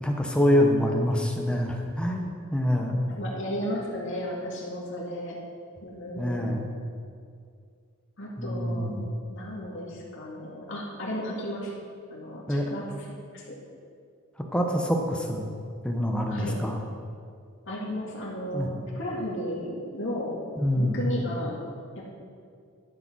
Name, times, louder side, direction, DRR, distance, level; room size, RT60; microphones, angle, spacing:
voice 1, 0.0-3.1 6.2-6.6 8.4-9.1 12.5-12.7 14.5-15.5 15.8-16.8 18.5-18.7 20.6-21.0, equal, 5° left, 1 dB, 0.9 m, -25 dB
voice 2, 3.0-5.4 5.8-6.6 8.2-9.0 9.3-11.7 12.1-13.6 16.3-16.6 17.7-20.4 20.8-21.6 22.0-22.1, equal, 60° left, -4 dB, 2.1 m, -34 dB
11.5 x 5.0 x 6.1 m, 2.2 s
head